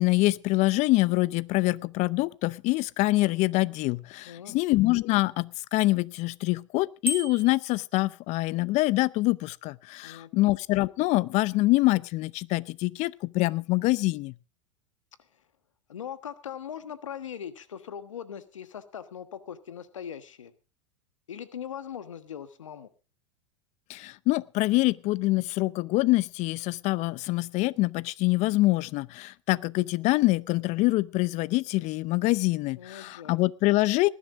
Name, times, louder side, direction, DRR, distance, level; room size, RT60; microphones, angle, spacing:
voice 1, 0.0-14.3 23.9-34.1, left 20 dB, 45° left, 21 dB, 0.6 m, -25 dB
voice 2, 4.2-4.6 10.0-10.5 15.9-20.5 21.3-22.9 32.8-33.4, left 9 dB, 90° left, 12 dB, 1.4 m, -40 dB
Bicycle bell, 7.0-7.7, left 1 dB, 15° right, 3.3 m, -32 dB
19.5 x 11.0 x 3.7 m, 0.33 s
hypercardioid pair, 100°, 16 cm